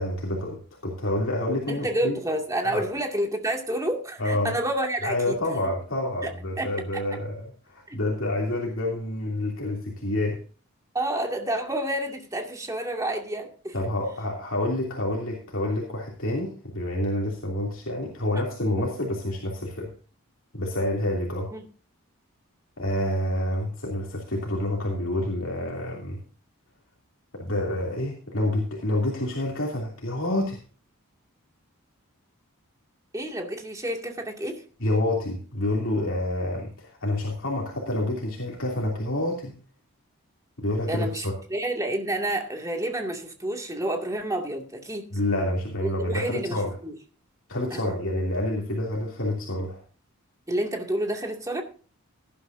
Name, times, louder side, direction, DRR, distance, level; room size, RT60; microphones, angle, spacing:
voice 1, 0.0-2.2 2.6-2.9 4.2-4.6 5.0-10.4 13.7-19.9 20.5-21.5 22.8-26.2 27.3-30.6 34.8-39.5 40.6-41.3 45.1-46.7 47.5-49.8, left 1 dB, 60° left, -2 dB, 3.0 m, -28 dB
voice 2, 1.7-5.4 6.2-6.3 6.6-6.7 7.9-8.0 10.9-13.7 18.8-18.9 21.5-21.6 33.1-34.6 40.9-45.1 45.8-46.6 46.8-46.9 47.7-48.0 50.5-51.6, right 1 dB, 15° right, 2 dB, 2.3 m, -29 dB
17.5 x 11.5 x 2.7 m, 0.39 s
head